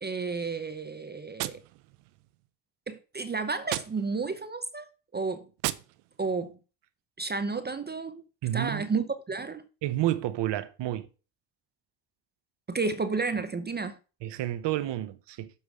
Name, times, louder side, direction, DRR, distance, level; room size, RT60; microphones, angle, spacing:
voice 1, 0.0-1.6 2.9-4.9 5.1-5.5 6.2-6.6 7.2-8.2 8.5-9.7 12.7-14.0, right 4 dB, 20° right, 0.7 m, -31 dB
Gunshot gunfire, 1.4-2.5 3.6-4.5 5.6-6.5, right 17 dB, 80° right, 0.7 m, -37 dB
voice 2, 8.4-8.9 9.8-11.1 14.2-15.5, right 13 dB, 60° right, 0.9 m, -30 dB
7.0 x 4.7 x 4.9 m
supercardioid pair, 80°, 49 cm